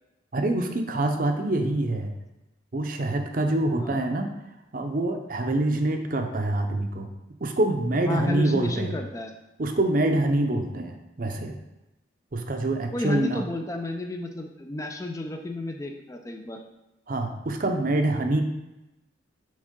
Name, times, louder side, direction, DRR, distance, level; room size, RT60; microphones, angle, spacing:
voice 1, 0.3-2.1 2.7-4.3 4.7-7.1 7.4-8.9 9.6-11.6 12.3-13.4 17.1-18.4, right 2 dB, 45° right, 5 dB, 0.6 m, -25 dB
voice 2, 8.1-9.3 12.9-16.6, left 2 dB, 15° left, 4 dB, 0.4 m, -32 dB
6.3 x 4.7 x 3.7 m, 0.99 s
head